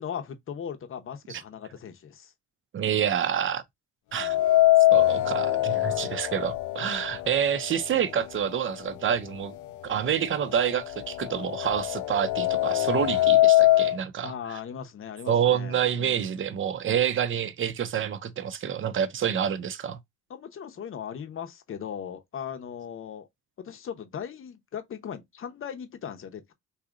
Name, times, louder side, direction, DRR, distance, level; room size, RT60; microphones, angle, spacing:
voice 1, 0.0-2.3 4.2-4.4 5.8-6.1 7.2-7.3 14.2-16.4 20.3-23.3 23.6-26.5, left 8 dB, 45° left, 0.8 m, -38 dB
voice 2, 2.7-3.6 4.1-4.4 4.9-9.6 9.8-14.6 15.3-20.0, right 9 dB, 40° right, 0.6 m, -28 dB
sound 1, 4.2-8.2 8.6-8.7 9.6-9.7 10.1-14.0, left 15 dB, 75° left, 0.4 m, -23 dB
2.7 x 2.4 x 3.7 m
cardioid pair, 90°, 30 cm